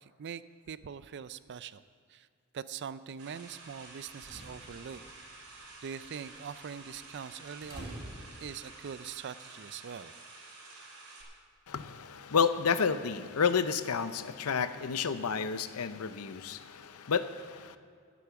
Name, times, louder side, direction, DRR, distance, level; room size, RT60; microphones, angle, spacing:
voice 1, 0.0-1.8 2.1-2.3 2.5-5.0 5.8-8.1 8.4-10.1, right 7 dB, 50° right, 15 dB, 0.4 m, -43 dB
sound 1, 3.2-11.2, right 3 dB, 85° right, 3.0 m, -51 dB
sound 2, 4.0-9.0, right 1 dB, 20° right, 3.6 m, -49 dB
voice 2, 11.7-17.8, left 6 dB, 75° left, 12 dB, 0.6 m, -30 dB
12.5 x 8.4 x 7.0 m, 2.2 s
head